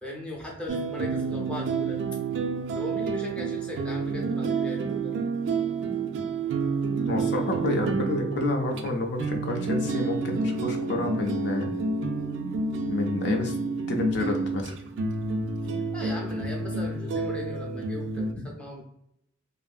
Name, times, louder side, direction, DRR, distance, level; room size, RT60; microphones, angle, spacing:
voice 1, 0.0-2.0 2.7-5.1 15.9-18.9, left 2 dB, 5° left, -3 dB, 0.5 m, -38 dB
sound 1, 0.7-18.3, right 4 dB, 70° right, 0.3 m, -29 dB
voice 2, 7.0-11.7 12.8-13.5 13.9-14.7, left 2 dB, 60° left, 2 dB, 0.4 m, -29 dB
2.6 x 2.5 x 2.3 m, 0.76 s
head